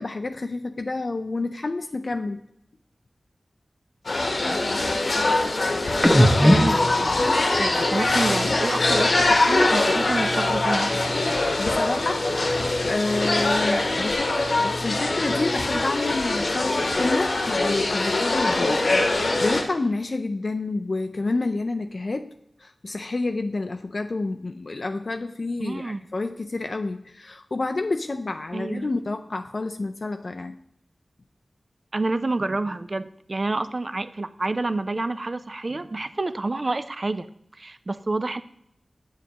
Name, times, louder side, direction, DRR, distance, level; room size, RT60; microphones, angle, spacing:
voice 1, 0.0-2.4 11.6-22.3 22.6-30.6, left 3 dB, 55° left, 6 dB, 0.4 m, -29 dB
sound 1, 4.0-19.6, left 2 dB, 70° left, 1.0 m, -23 dB
sound 2, 6.0-9.6 9.9-11.7 12.0-13.9 14.2-16.1, equal, 5° left, 0.7 m, -27 dB
voice 2, 6.1-10.9 25.6-26.0 28.5-28.9 31.9-37.3 37.6-38.4, right 2 dB, 45° right, 12 dB, 0.4 m, -28 dB
8.2 x 7.2 x 2.9 m, 0.76 s
wide cardioid pair, 80°, 0 cm